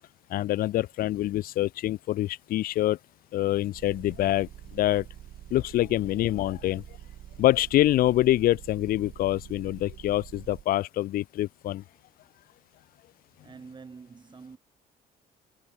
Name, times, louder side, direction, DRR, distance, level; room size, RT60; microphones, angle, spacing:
voice 1, 0.3-3.0 3.3-4.5 4.7-5.0 5.5-6.8 7.4-11.8, left 14 dB, 60° left, 0.5 m, -25 dB
Motor vehicle (road) / Engine, 3.7-10.6, right 12 dB, 60° right, 1.4 m, -46 dB
voice 2, 13.4-14.6, right 5 dB, 25° right, 3.0 m, -46 dB
cardioid pair, 110°, 17 cm